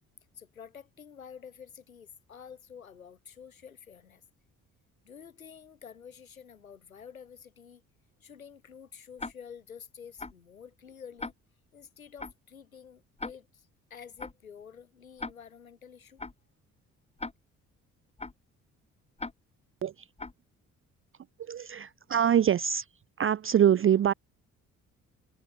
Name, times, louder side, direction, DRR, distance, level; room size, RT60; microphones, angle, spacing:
voice 1, 0.3-4.2 5.0-7.8 8.2-11.3 11.7-16.2, left 7 dB, 90° left, 6.2 m, -49 dB
Tick-tock, 9.2-9.3 10.2-10.3 11.2-11.3 12.2-12.3 13.2-13.3 14.2-14.3 15.2-15.3 16.2-16.3 17.2-17.3 18.2-18.3 19.2-19.3 20.2-20.3, left 3 dB, 15° left, 1.6 m, -37 dB
voice 2, 21.4-22.9 23.2-24.1, right 9 dB, 30° right, 0.6 m, -24 dB
figure-of-eight pair, 45°, 40 cm